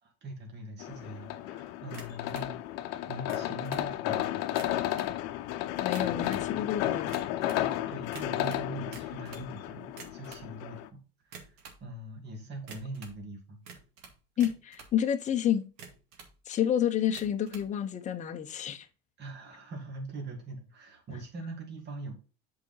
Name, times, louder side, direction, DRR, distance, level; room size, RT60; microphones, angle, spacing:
voice 1, 0.0-4.3 7.6-13.6 19.2-22.1, right 2 dB, 35° right, 2.6 m, -42 dB
sound 1, 0.8-10.9, left 13 dB, 55° left, 0.8 m, -33 dB
sound 2, 1.9-2.5 3.1-3.9 4.4-5.1 5.8-6.5 7.1-7.7 8.1-9.5 9.9-10.5 11.2-11.8 12.7-13.2 13.6-15.0 15.6-16.3 17.0-17.7, right 5 dB, 60° right, 2.1 m, -49 dB
voice 2, 5.8-7.2 14.4-15.6 16.5-18.9, left 10 dB, 25° left, 0.8 m, -29 dB
8.2 x 5.0 x 3.9 m
supercardioid pair, 140°, 31 cm